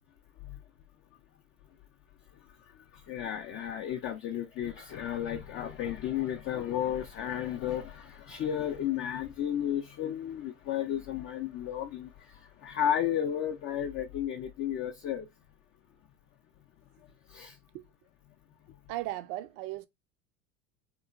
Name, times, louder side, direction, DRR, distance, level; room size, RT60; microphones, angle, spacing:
voice 1, 2.9-15.3 17.3-17.6, left 10 dB, 35° left, 0.5 m, -33 dB
voice 2, 18.9-19.9, right 16 dB, 60° right, 0.5 m, -36 dB
2.9 x 2.2 x 2.4 m
supercardioid pair, 95°, 36 cm